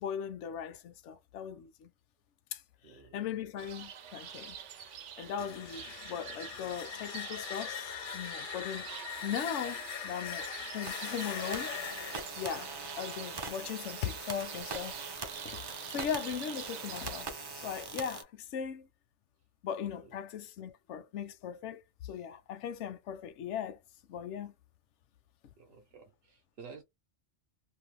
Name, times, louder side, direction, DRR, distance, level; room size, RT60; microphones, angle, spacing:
voice 1, 0.0-1.9 2.5-2.6 2.9-10.5 10.7-11.7 12.4-15.0 15.4-17.3 17.5-18.9 19.6-23.8 24.1-24.5, left 8 dB, 80° left, 0.9 m, -39 dB
voice 2, 2.8-3.3 14.6-14.7 15.9-16.3 20.0-20.2 25.6-26.8, right 5 dB, 60° right, 0.9 m, -53 dB
sound 1, 3.6-17.2, right 8 dB, 85° right, 0.9 m, -46 dB
sound 2, 5.2-14.0, left 9 dB, 60° left, 0.6 m, -42 dB
sound 3, 10.8-18.2, right 3 dB, 35° right, 0.4 m, -42 dB
2.6 x 2.1 x 3.1 m
omnidirectional pair, 1.2 m